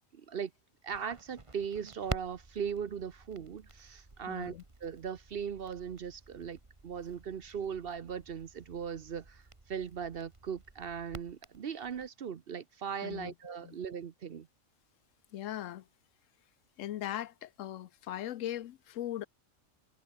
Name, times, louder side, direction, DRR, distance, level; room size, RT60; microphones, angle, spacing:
voice 1, 0.1-0.5 0.8-14.5, right 7 dB, 55° right, 0.9 m, -39 dB
Crackle, 0.9-12.1, right 2 dB, 25° right, 1.7 m, -48 dB
voice 2, 4.3-4.6 13.0-13.8 15.3-15.9 16.8-19.3, left 12 dB, 80° left, 1.0 m, -39 dB
omnidirectional pair, 1.3 m